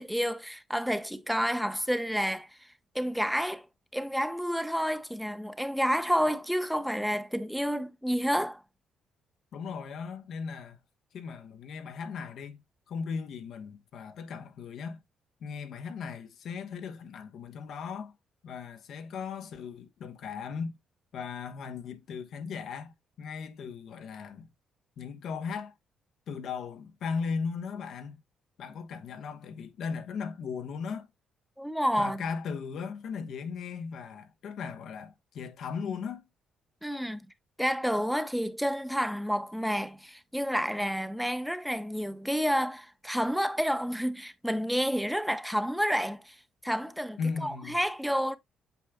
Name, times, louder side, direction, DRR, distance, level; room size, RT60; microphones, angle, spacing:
voice 1, 0.0-2.7 2.9-3.7 3.9-8.6 31.6-32.2 36.8-37.3 37.6-46.4 46.6-48.4, equal, ahead, 0.7 m, -29 dB
voice 2, 9.5-10.8 11.1-12.6 12.9-15.0 15.4-18.1 18.4-20.8 21.1-24.5 25.0-25.7 26.3-28.2 28.6-31.1 32.0-36.2 47.2-47.8, left 5 dB, 70° left, 1.1 m, -37 dB
8.2 x 5.7 x 2.3 m
cardioid pair, 90°, 0 cm